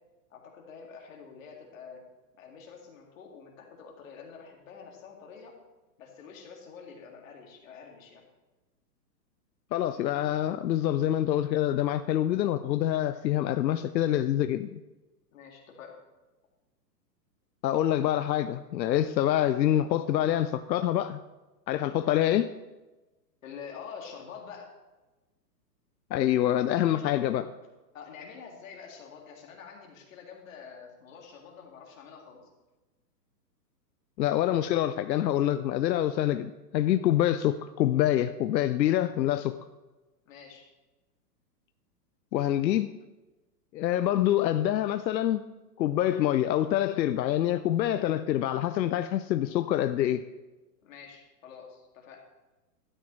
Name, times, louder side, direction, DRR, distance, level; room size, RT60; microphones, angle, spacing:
voice 1, 0.3-2.0 2.4-5.6 6.0-8.2 15.3-16.0 22.2-22.3 23.4-24.7 26.5-27.4 27.9-32.5 40.3-40.7 50.8-52.2, left 6 dB, 50° left, 2.2 m, -47 dB
voice 2, 9.7-14.8 17.6-21.2 21.7-22.5 26.1-27.4 34.2-39.6 42.3-42.9 43.7-45.4 45.8-50.2, left 12 dB, 90° left, 0.6 m, -26 dB
12.5 x 8.8 x 3.2 m
hypercardioid pair, 165°, 50 cm